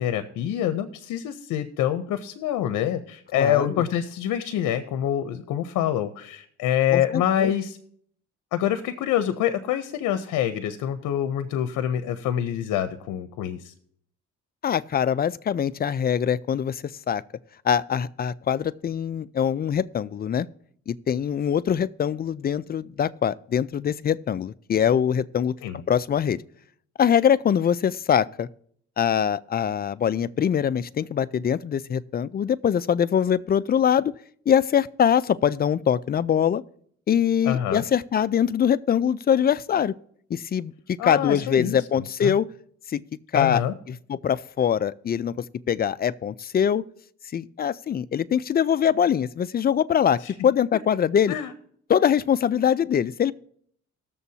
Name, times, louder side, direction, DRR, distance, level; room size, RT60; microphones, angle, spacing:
voice 1, 0.0-7.8 8.5-13.7 25.6-25.8 37.5-37.8 41.0-41.8 42.2-42.3 43.3-43.7 51.3-51.5, left 10 dB, 85° left, 0.7 m, -26 dB
voice 2, 3.4-3.8 6.9-7.5 14.6-17.2 17.6-20.5 20.9-25.5 25.9-26.4 27.0-28.5 29.0-34.1 34.5-36.6 37.1-39.9 40.3-40.7 41.0-42.5 42.9-43.0 43.3-43.6 43.9-46.8 47.3-51.4 51.9-53.3, left 8 dB, 30° left, 0.4 m, -23 dB
19.5 x 6.9 x 2.8 m
cardioid pair, 90°, 30 cm